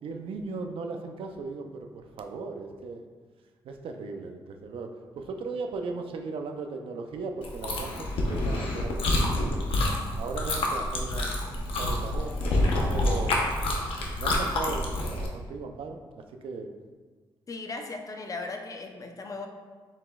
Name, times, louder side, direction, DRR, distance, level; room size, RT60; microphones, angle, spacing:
voice 1, 0.0-3.0 3.6-4.9 5.2-9.6 10.2-12.4 12.9-13.4 14.2-16.0 16.4-16.7, right 4 dB, 75° right, 5 dB, 0.5 m, -37 dB
Chewing mastication, 7.4-15.3, left 1 dB, 80° left, 0.8 m, -27 dB
voice 2, 17.5-19.5, left 3 dB, 35° left, 4 dB, 0.6 m, -37 dB
7.3 x 2.9 x 2.3 m, 1.4 s
cardioid pair, 80°, 9 cm